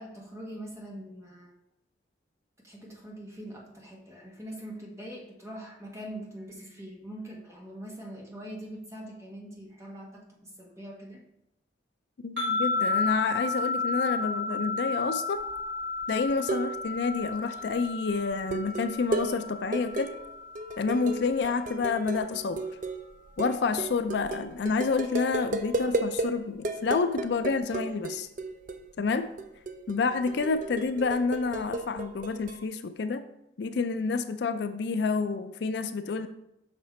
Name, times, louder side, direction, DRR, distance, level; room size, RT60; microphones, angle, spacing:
voice 1, 0.0-1.5 2.6-11.2, right 1 dB, 15° right, -2 dB, 1.2 m, -43 dB
voice 2, 12.2-15.4 16.1-20.2 20.8-22.7 23.4-28.3 29.0-29.3 29.9-33.3 33.6-36.3, left 4 dB, 60° left, 10 dB, 0.4 m, -29 dB
sound 1, 12.4-21.6, left 4 dB, 65° right, 2.4 m, -33 dB
sound 2, 15.4-15.7 16.0-17.0 17.2-17.6 18.3-26.3 26.6-28.8 29.1-32.6, right 2 dB, 45° right, 0.4 m, -34 dB
6.0 x 5.6 x 4.2 m, 0.83 s
head